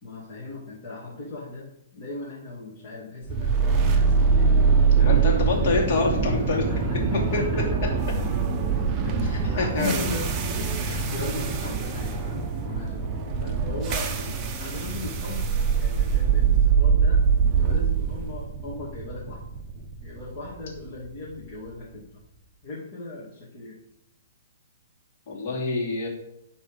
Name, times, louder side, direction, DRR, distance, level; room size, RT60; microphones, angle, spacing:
voice 1, 0.0-4.5 4.9-5.7 6.7-7.8 9.0-10.3 10.5-14.1 14.5-15.4 15.8-19.4 20.0-22.1 22.6-23.8, left 3 dB, 30° left, -8 dB, 2.4 m, -38 dB
sound 1, 3.3-21.4, right 5 dB, 20° right, 0.9 m, -23 dB
voice 2, 5.0-6.7 9.6-10.1 10.8-11.0 14.2-14.3 25.3-26.1, left 3 dB, 45° left, -1 dB, 2.9 m, -26 dB
11.5 x 4.2 x 5.2 m, 0.82 s
hypercardioid pair, 155°, 0 cm